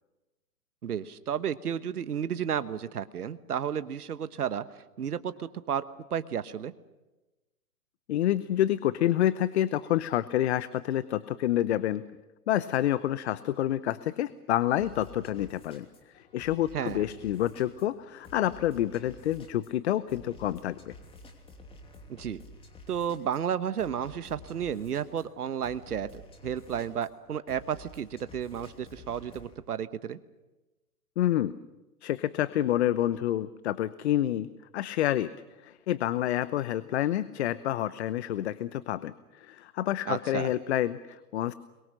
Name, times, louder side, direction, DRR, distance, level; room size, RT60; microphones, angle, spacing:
voice 1, 0.8-4.6 5.0-5.8 6.1-6.7 16.7-17.0 22.1-22.4 22.9-30.2 40.0-40.5, right 8 dB, 80° right, 12 dB, 1.3 m, -32 dB
voice 2, 8.1-12.0 12.5-15.9 16.1-20.9 31.2-31.5 32.0-34.5 34.7-35.3 35.6-41.5, left 12 dB, 45° left, 15 dB, 0.9 m, -28 dB
sound 1, 14.8-29.6, left 1 dB, 10° left, 2.9 m, -51 dB
29.0 x 22.5 x 6.5 m, 1.1 s
hypercardioid pair, 135°, 45 cm